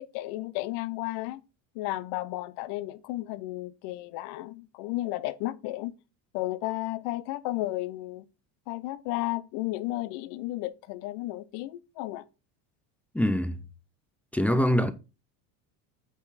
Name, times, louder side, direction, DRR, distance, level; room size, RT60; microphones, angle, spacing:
voice 1, 0.0-1.4 1.7-5.9 6.3-8.2 8.7-12.2, left 17 dB, 65° left, 0.8 m, -33 dB
voice 2, 13.1-13.6 14.3-14.9, equal, 5° left, 0.3 m, -24 dB
8.2 x 4.5 x 4.1 m
supercardioid pair, 120°, 45 cm